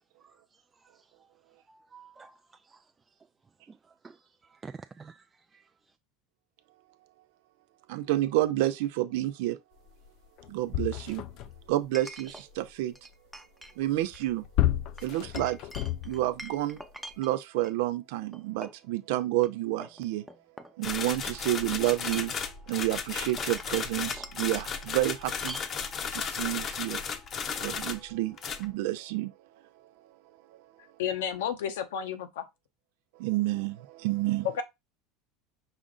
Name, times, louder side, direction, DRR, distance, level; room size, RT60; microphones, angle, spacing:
voice 1, 1.7-2.4 2.6-2.8 3.7-3.8 4.0-5.3 5.5-5.6, right 5 dB, 20° right, 0.3 m, -49 dB
voice 2, 7.9-9.6 10.5-11.2 11.7-12.9 13.8-14.5 15.0-15.6 16.0-16.8 17.2-20.2 20.8-22.3 22.7-25.6 26.1-27.0 27.6-29.3 30.0-30.1 30.5-30.6 33.2-34.6, right 16 dB, 75° right, 0.6 m, -29 dB
Chink clink, 8.5-8.6 11.9-12.5 12.9-13.7 14.1-14.3 15.0-17.8 18.3-18.9 19.4-19.5 19.8-21.2 21.9-22.5 23.4-24.6 25.4-25.7, equal, ahead, 0.7 m, -45 dB
sound 1, 10.1-10.2 10.4-11.7 14.0-16.4 17.1-17.2, left 14 dB, 60° left, 0.4 m, -31 dB
sound 2, 20.8-28.1 28.4-28.7, left 6 dB, 40° left, 0.8 m, -35 dB
voice 3, 31.0-32.4 34.5-34.6, left 8 dB, 80° left, 0.9 m, -32 dB
5.2 x 2.5 x 3.7 m
hypercardioid pair, 95°, 0 cm